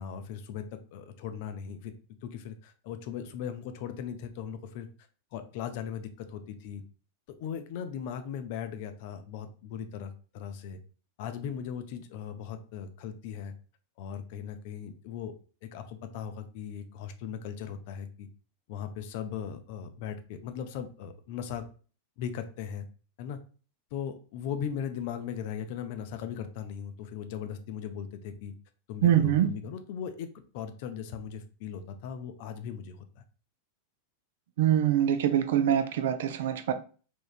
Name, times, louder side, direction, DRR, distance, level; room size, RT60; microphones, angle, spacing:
voice 1, 0.0-1.9 2.2-4.9 5.3-6.8 7.4-10.8 11.2-13.5 14.0-15.3 15.6-18.3 18.7-21.7 22.2-22.9 23.2-23.4 23.9-28.5 28.9-30.3 30.5-33.2, left 8 dB, 50° left, 0.4 m, -38 dB
voice 2, 29.0-29.5 34.6-36.7, right 10 dB, 55° right, 0.4 m, -24 dB
3.5 x 3.0 x 2.4 m
figure-of-eight pair, 90°, 0 cm